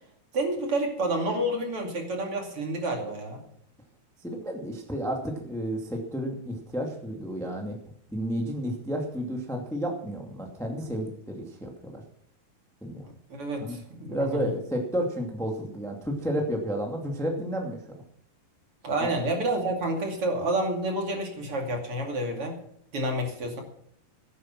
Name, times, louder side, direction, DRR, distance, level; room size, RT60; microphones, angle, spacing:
voice 1, 0.3-3.4 13.3-14.5 18.8-22.6 22.9-23.6, right 1 dB, 40° right, 2 dB, 2.9 m, -29 dB
voice 2, 4.2-7.8 8.1-12.0 12.8-13.1 13.6-17.8 19.0-19.1, equal, ahead, 1 dB, 0.7 m, -31 dB
17.0 x 10.0 x 6.0 m, 0.67 s
omnidirectional pair, 4.8 m